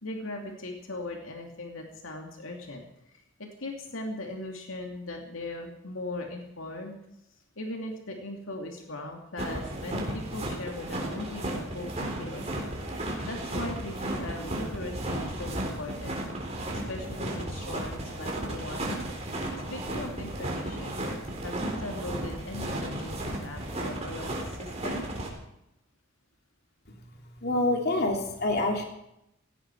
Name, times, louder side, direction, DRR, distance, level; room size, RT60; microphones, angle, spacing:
voice 1, 0.0-7.0 7.6-12.5 13.3-16.2 16.7-19.0 19.7-21.0 21.4-25.1, left 2 dB, 80° left, 2 dB, 2.5 m, -39 dB
sound 1, 9.4-25.3, right 1 dB, 30° right, 3.9 m, -34 dB
voice 2, 27.4-28.8, left 2 dB, 50° left, 2 dB, 3.0 m, -26 dB
17.5 x 17.0 x 4.7 m, 0.82 s
head